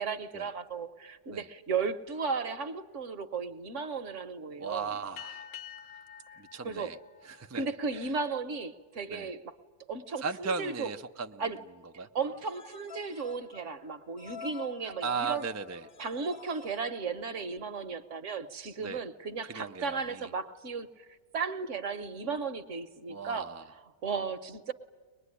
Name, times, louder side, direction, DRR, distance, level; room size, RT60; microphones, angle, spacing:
voice 1, 0.0-4.9 6.6-6.9 7.5-9.5 9.9-10.9 11.4-11.6 12.1-15.4 16.0-21.1 21.3-23.5 24.0-24.7, right 5 dB, 55° right, 10 dB, 1.3 m, -35 dB
voice 2, 4.6-5.5 6.4-7.0 7.2-7.6 7.9-8.1 9.1-9.3 10.2-11.4 12.0-12.1 14.8-15.9 18.8-19.0 19.4-20.3 23.1-23.6, right 5 dB, 25° right, 6 dB, 0.3 m, -37 dB
sound 1, 5.2-8.1, left 10 dB, 75° left, 1.8 m, -48 dB
sound 2, 12.2-17.6, left 5 dB, 45° left, 1.0 m, -48 dB
23.5 x 21.0 x 9.9 m, 1.5 s
omnidirectional pair, 1.6 m